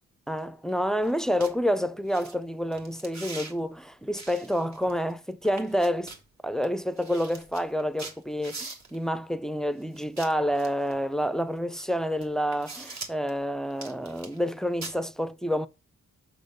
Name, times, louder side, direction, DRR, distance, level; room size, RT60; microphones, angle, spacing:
voice 1, 0.3-6.1 6.4-15.7, equal, ahead, 0.3 m, -28 dB
sound 1, 1.0-1.1 1.4-1.5 2.1-2.3 2.7-3.5 4.1-5.1 5.4-6.2 6.6-6.7 7.0-9.0 9.9-11.0 11.7-11.8 12.2-13.3 13.7-14.5 14.8-14.9, right 3 dB, 55° right, 1.3 m, -42 dB
6.3 x 4.0 x 5.2 m
cardioid pair, 65°, 32 cm